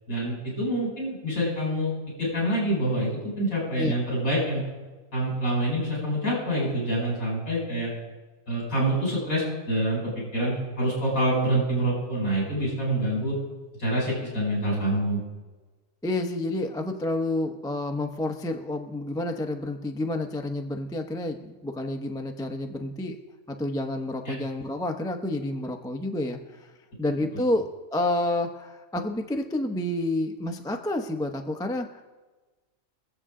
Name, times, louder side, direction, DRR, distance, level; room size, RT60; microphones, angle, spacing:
voice 1, 0.1-1.9 2.2-4.6 5.1-7.9 8.5-10.0 10.3-13.4 13.8-15.2 24.3-24.4, right 1 dB, 80° left, -5 dB, 5.8 m, -26 dB
voice 2, 16.0-23.2 23.5-26.7 27.0-32.0, left 1 dB, 5° left, 4 dB, 0.6 m, -29 dB
23.5 x 8.1 x 3.7 m, 1.3 s
omnidirectional pair, 1.5 m